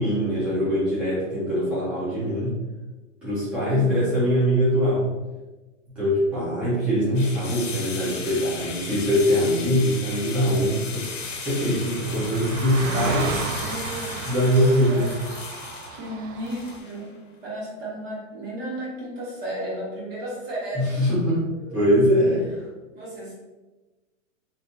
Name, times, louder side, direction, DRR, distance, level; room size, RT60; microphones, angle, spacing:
voice 1, 0.0-2.5 3.2-5.1 5.9-13.4 14.3-15.1 20.7-21.4 21.7-22.7, equal, 5° right, -12 dB, 0.8 m, -22 dB
voice 2, 3.7-4.2 12.1-15.2 15.6-17.1 17.4-21.0 21.6-21.8 22.9-23.3, right 1 dB, 45° right, -6 dB, 1.4 m, -35 dB
sound 1, 7.1-17.1, left 5 dB, 75° left, 0.7 m, -36 dB
Car passing by, 9.7-9.8 9.9-16.8, right 5 dB, 90° right, 0.5 m, -34 dB
3.0 x 2.7 x 2.6 m, 1.2 s
hypercardioid pair, 150°, 38 cm